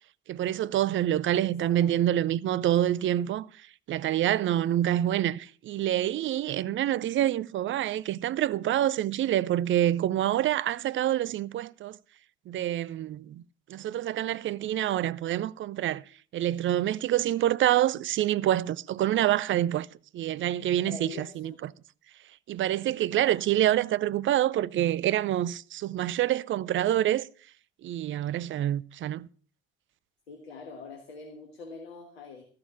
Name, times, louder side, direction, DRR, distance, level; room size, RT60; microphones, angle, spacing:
voice 1, 0.3-3.5 3.9-12.0 12.5-13.4 13.7-16.0 16.3-19.9 20.1-21.7 22.5-27.2 27.8-29.3, right 12 dB, 40° right, 0.5 m, -27 dB
voice 2, 1.6-2.0 20.8-21.5 30.3-32.4, left 4 dB, 80° left, 1.5 m, -44 dB
13.5 x 6.7 x 6.9 m
figure-of-eight pair, 50°, 30 cm